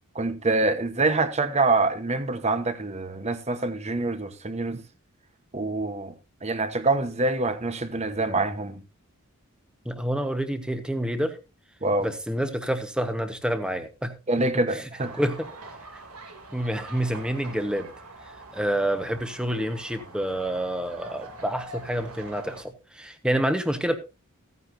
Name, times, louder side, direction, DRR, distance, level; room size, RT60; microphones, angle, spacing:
voice 1, 0.1-4.8 5.5-6.1 6.4-8.8 11.8-12.1 14.3-15.1, right 2 dB, 30° right, 1.1 m, -25 dB
voice 2, 9.8-11.4 12.0-14.1 14.7-14.8 15.1-15.5 16.5-17.9 18.5-24.0, right 1 dB, 5° right, 1.2 m, -28 dB
sound 1, 15.0-22.6, right 2 dB, 85° right, 3.0 m, -44 dB
15.5 x 9.6 x 2.7 m
head